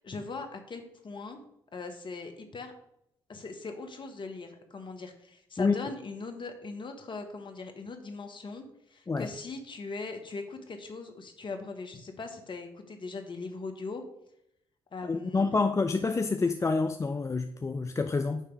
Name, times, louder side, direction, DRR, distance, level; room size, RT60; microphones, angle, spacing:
voice 1, 0.0-1.4 1.7-2.7 3.3-8.6 8.9-14.0 14.9-15.6, left 3 dB, 45° left, 1.2 m, -40 dB
voice 2, 15.1-18.4, left 4 dB, 25° left, 0.5 m, -27 dB
9.1 x 3.3 x 4.6 m
hypercardioid pair, 45°, 12 cm